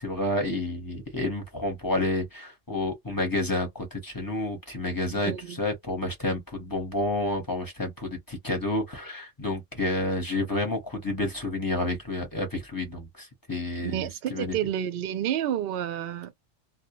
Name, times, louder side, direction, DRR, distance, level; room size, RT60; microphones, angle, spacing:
voice 1, 0.0-5.3 5.6-14.6, left 1 dB, 20° left, 0.8 m, -30 dB
voice 2, 5.1-5.6 13.8-16.3, right 10 dB, 65° right, 0.6 m, -30 dB
2.2 x 2.1 x 2.9 m
omnidirectional pair, 1.4 m